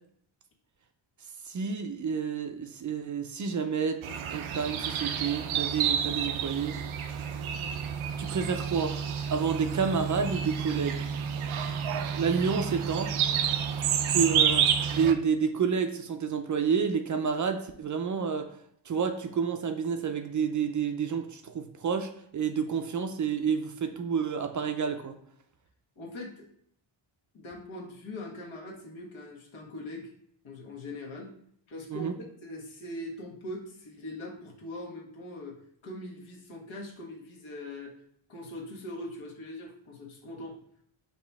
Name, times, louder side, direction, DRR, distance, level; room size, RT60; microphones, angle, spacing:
voice 1, 1.5-4.0 4.3-6.8 8.2-9.0 9.3-11.0 12.2-13.1 14.1-18.5 18.9-25.2 31.9-32.1, right 6 dB, 40° right, 6 dB, 0.4 m, -29 dB
sound 1, 4.0-15.1, right 8 dB, 90° right, 0.6 m, -29 dB
voice 2, 26.0-26.5 27.3-30.1 30.4-31.3 31.7-32.1 32.4-35.6 35.8-37.9 38.3-40.6, left 1 dB, 75° left, -2 dB, 1.4 m, -41 dB
5.3 x 2.9 x 3.4 m, 0.66 s
cardioid pair, 115°, 48 cm